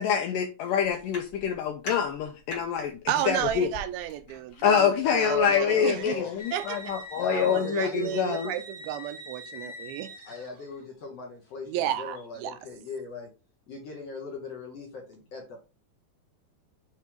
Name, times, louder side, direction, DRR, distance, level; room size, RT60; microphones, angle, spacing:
voice 1, 0.0-3.0 3.3-3.7 4.6-8.5, left 8 dB, 85° left, 1.9 m, -26 dB
sound 1, 0.8-7.1, left 1 dB, 40° left, 1.9 m, -45 dB
voice 2, 3.1-6.2 6.5-7.0 7.3-10.1 11.7-12.6, right 11 dB, 80° right, 2.4 m, -32 dB
voice 3, 5.2-6.3 7.1-8.2 10.3-13.3 13.7-15.6, left 2 dB, 60° left, 1.7 m, -38 dB
sound 2, 6.4-10.9, equal, 30° right, 1.0 m, -44 dB
7.3 x 3.4 x 4.5 m
omnidirectional pair, 4.4 m